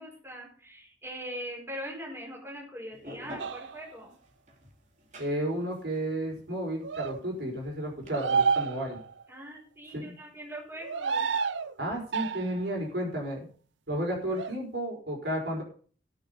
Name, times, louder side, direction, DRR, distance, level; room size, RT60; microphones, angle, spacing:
voice 1, 0.0-4.1 9.3-11.3, equal, 15° right, -2 dB, 5.1 m, -41 dB
sound 1, 2.9-8.1, equal, 40° right, 2.7 m, -48 dB
sound 2, 3.4-3.9 6.8-7.2 8.1-9.2 10.8-11.7 12.1-12.7 14.3-14.6, right 5 dB, 85° right, 0.7 m, -29 dB
voice 2, 5.2-9.0 9.9-10.1 11.8-13.5 13.9-15.6, right 1 dB, 65° right, 0 dB, 5.0 m, -32 dB
17.0 x 6.6 x 5.1 m, 0.42 s
head